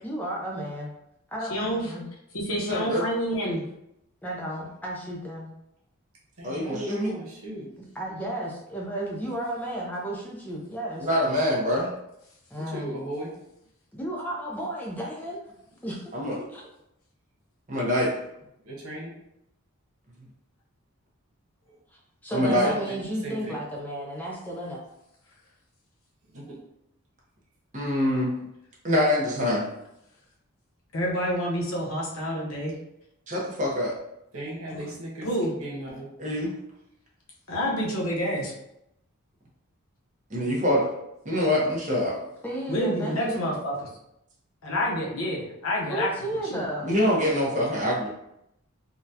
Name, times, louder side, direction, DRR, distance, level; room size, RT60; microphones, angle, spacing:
voice 1, 0.0-0.9 1.3-2.1 4.2-5.5 7.8-11.1 12.5-13.0 13.9-15.4 15.8-16.1 16.5-16.6 22.2-24.8 42.4-43.5 45.8-46.9, right 1 dB, 10° left, -3 dB, 0.5 m, -33 dB
voice 2, 1.5-1.8 2.3-3.6 30.9-32.7 34.7-34.8 35.2-35.5 37.5-38.5 42.7-43.7 44.6-46.1 46.5-46.6, equal, 70° left, -3 dB, 0.8 m, -28 dB
voice 3, 2.7-3.0 6.4-7.2 11.0-11.9 16.1-16.4 17.7-18.1 22.3-22.7 27.7-28.3 28.8-29.6 33.3-33.9 36.2-36.5 40.3-40.9 41.2-42.2 46.8-48.1, left 1 dB, 35° right, -4 dB, 0.9 m, -24 dB
voice 4, 6.4-7.7 12.6-13.3 18.6-19.1 22.7-23.0 23.2-23.6 26.3-26.6 34.3-35.3 35.6-36.1, right 1 dB, 80° right, -3 dB, 1.1 m, -36 dB
3.9 x 2.3 x 2.7 m, 0.81 s
head